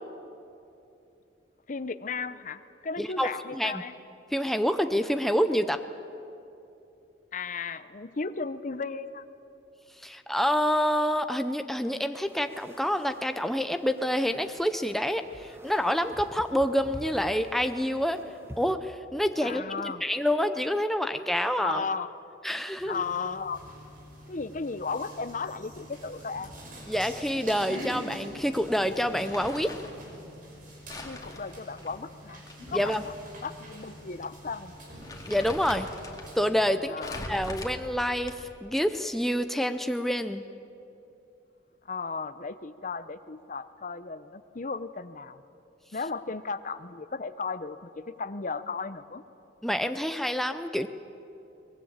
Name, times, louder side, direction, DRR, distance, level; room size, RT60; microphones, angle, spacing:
voice 1, 1.7-3.9 7.3-9.2 19.4-20.0 21.6-22.1 22.8-23.6 24.3-26.5 31.0-32.4 32.7-33.1 33.4-34.7 36.9-37.3 41.8-45.4 45.9-49.2, left 4 dB, 45° left, 13 dB, 0.7 m, -35 dB
voice 2, 3.0-3.8 4.3-5.8 10.0-18.2 18.6-21.8 22.4-23.0 26.9-29.8 32.7-33.0 35.3-35.9 36.3-37.0 37.3-40.4 49.6-50.9, equal, ahead, 8 dB, 0.5 m, -27 dB
sound 1, 12.2-18.7, equal, 15° right, 1.4 m, -48 dB
sound 2, 22.8-36.7, equal, 45° right, 5.4 m, -45 dB
Crumpling crinkling, 29.0-30.0 30.9-33.0 33.3-33.4 34.2-34.4 34.7-36.3 37.0-38.6, left 2 dB, 20° left, 2.2 m, -42 dB
22.5 x 20.0 x 8.8 m, 2.9 s
head